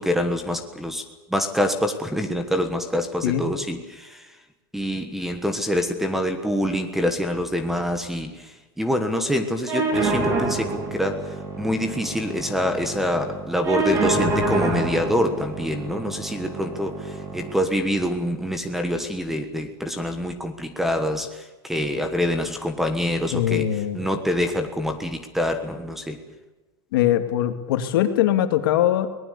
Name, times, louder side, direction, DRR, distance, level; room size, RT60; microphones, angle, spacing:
voice 1, 0.0-4.4 4.7-26.2, equal, ahead, 8 dB, 1.3 m, -26 dB
sound 1, 9.7-17.7, right 2 dB, 20° right, 3.4 m, -27 dB
voice 2, 23.3-24.0 26.9-29.1, left 12 dB, 65° left, 7 dB, 2.4 m, -21 dB
22.5 x 19.5 x 8.4 m, 1.1 s
supercardioid pair, 175°, 13 cm